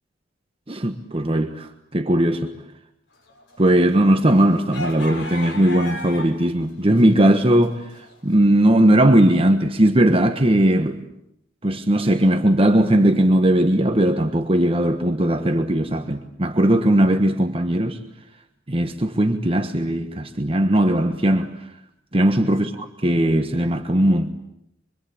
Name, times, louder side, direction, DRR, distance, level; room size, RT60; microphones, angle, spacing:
voice 1, 0.7-2.5 3.6-11.0 11.6-18.0 18.7-21.6 22.1-24.3, right 1 dB, 30° right, 1.4 m, -18 dB
sound 1, 3.3-6.5 6.8-8.1, left 2 dB, 80° left, 6.9 m, -34 dB
25.5 x 24.5 x 8.7 m
head